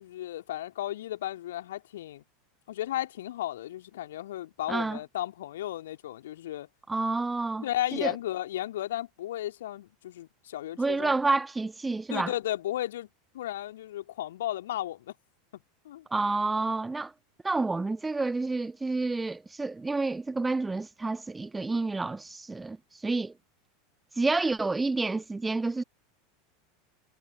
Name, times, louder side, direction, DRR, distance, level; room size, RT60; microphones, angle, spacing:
voice 1, 0.0-2.2 2.7-6.7 7.6-11.3 12.1-13.1 13.3-15.1 15.8-16.1, left 13 dB, 60° left, 3.4 m, -34 dB
voice 2, 4.7-5.0 6.9-7.7 8.0-8.2 10.8-12.3 16.1-17.1 17.4-23.3 24.2-25.8, right 3 dB, 10° right, 1.4 m, -29 dB
figure-of-eight pair, 80°, 0 cm